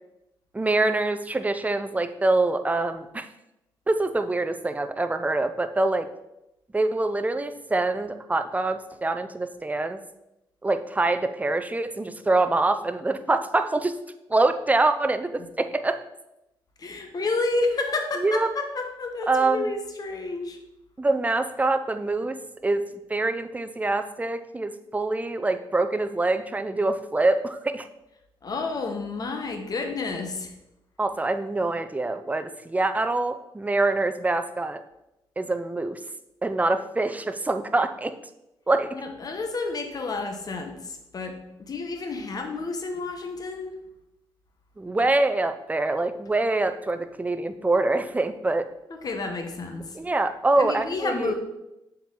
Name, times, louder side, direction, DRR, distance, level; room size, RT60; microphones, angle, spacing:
voice 1, 0.5-3.3 3.9-6.1 6.7-10.0 10.6-13.9 14.3-16.0 18.2-18.5 19.3-19.7 21.0-22.4 22.6-27.9 31.0-34.8 35.4-36.0 36.4-38.1 38.7-39.0 44.8-48.7 49.9-51.3, right 2 dB, 15° right, 9 dB, 0.5 m, -25 dB
voice 2, 16.8-20.6 28.4-30.5 38.9-41.3 41.6-43.7 48.9-49.8 50.6-51.3, left 3 dB, 50° left, 5 dB, 1.1 m, -30 dB
7.0 x 4.6 x 3.8 m, 0.90 s
cardioid pair, 70°, 9 cm